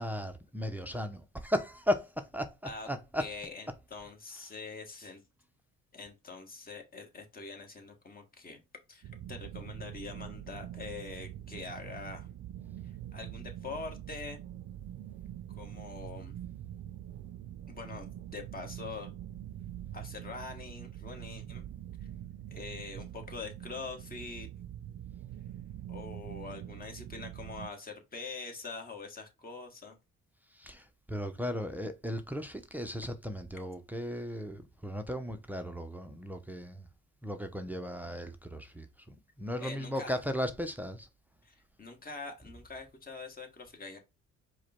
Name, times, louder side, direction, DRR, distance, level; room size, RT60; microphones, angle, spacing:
voice 1, 0.0-3.3 30.5-36.9 37.2-41.1, equal, 5° right, 0.6 m, -36 dB
voice 2, 3.2-5.2 5.9-8.6 8.9-9.0 9.3-12.3 12.8-14.4 15.5-16.3 17.7-19.1 19.9-21.6 22.5-24.5 25.9-30.0 39.6-40.2 41.4-44.0, left 4 dB, 30° left, 1.5 m, -44 dB
sound 1, 9.0-27.7, right 11 dB, 65° right, 0.5 m, -44 dB
4.8 x 2.2 x 4.3 m
cardioid pair, 90°, 30 cm